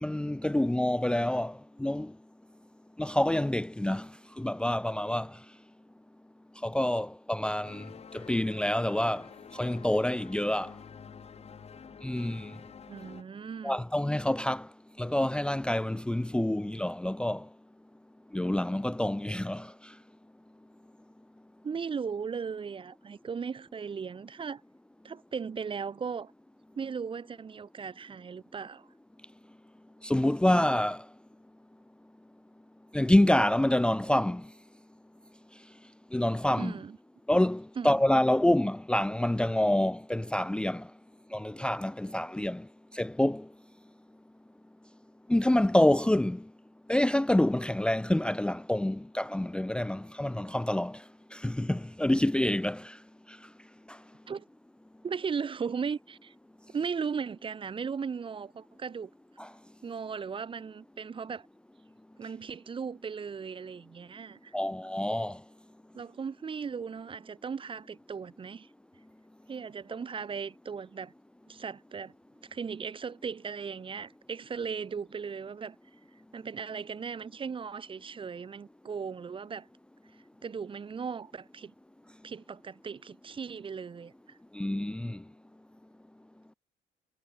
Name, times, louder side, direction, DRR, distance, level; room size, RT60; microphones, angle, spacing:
voice 1, 0.0-2.1 3.0-4.1 4.4-5.4 6.6-7.9 8.1-10.7 12.0-12.5 13.6-14.7 15.0-17.5 18.3-19.7 30.0-31.0 32.9-34.5 36.1-36.8 37.3-40.9 41.3-42.7 42.9-43.5 45.3-46.4 46.9-51.0 51.3-53.0 53.9-54.0 59.4-59.5 64.5-65.4 84.5-85.2, left 1 dB, 5° left, 0.9 m, -27 dB
sound 1, 7.6-13.2, left 7 dB, 40° left, 3.5 m, -49 dB
voice 2, 12.9-13.8 21.6-24.6 25.0-26.3 26.7-28.9 36.6-37.0 37.8-38.0 54.3-54.4 55.0-56.3 56.7-59.1 59.8-61.5 62.2-64.5 65.9-68.7 69.5-71.1 71.5-72.1 72.5-75.8 76.3-79.7 80.4-81.7 82.2-84.4, right 6 dB, 30° right, 1.4 m, -37 dB
cardioid pair, 110°, 17 cm